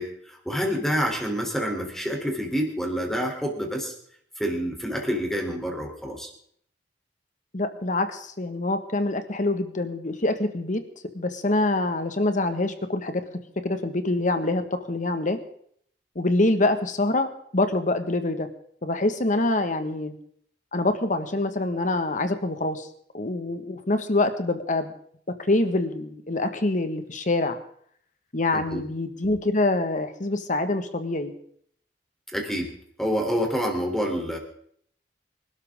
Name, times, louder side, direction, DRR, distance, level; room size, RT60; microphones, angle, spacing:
voice 1, 0.0-3.9 4.4-6.3 28.5-28.8 32.3-32.7 33.0-34.4, equal, ahead, 1 dB, 3.4 m, -27 dB
voice 2, 7.5-10.8 11.1-13.2 13.6-15.4 16.1-18.5 18.8-20.1 20.7-22.9 23.1-24.9 25.5-27.6 28.3-31.3, left 2 dB, 45° left, 8 dB, 1.6 m, -25 dB
26.0 x 12.5 x 3.7 m, 0.65 s
head